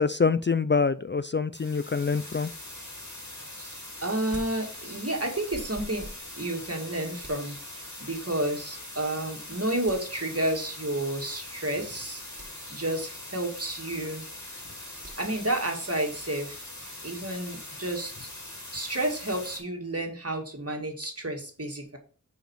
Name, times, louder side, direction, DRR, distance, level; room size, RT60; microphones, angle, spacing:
voice 1, 0.0-2.5, left 5 dB, 35° left, 14 dB, 0.4 m, -25 dB
sound 1, 1.5-19.6, left 1 dB, 60° left, 3.1 m, -42 dB
voice 2, 4.0-6.1 6.4-14.5 15.2-16.7 17.0-18.3 18.7-22.0, right 1 dB, 50° right, 2 dB, 2.2 m, -31 dB
sound 2, 4.3-5.2 5.5-8.4 9.9-10.5 12.2-13.0 15.0-17.6, right 1 dB, 35° right, 3.0 m, -49 dB
6.4 x 5.2 x 4.7 m, 0.40 s
wide cardioid pair, 40°, 32 cm